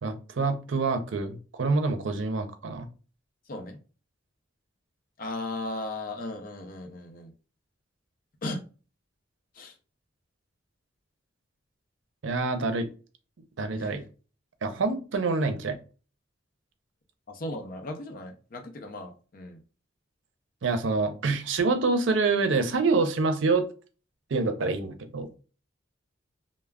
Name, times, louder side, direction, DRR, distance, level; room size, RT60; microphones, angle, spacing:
voice 1, 0.0-2.9 12.2-12.9 13.6-14.0 14.6-15.8 20.6-23.7 24.3-25.3, right 3 dB, 85° right, 0.5 m, -26 dB
voice 2, 3.5-3.8 5.2-7.3 8.4-8.6 9.5-9.8 13.7-14.0 17.3-19.6, left 2 dB, 50° left, 0.5 m, -36 dB
2.3 x 2.0 x 3.4 m
head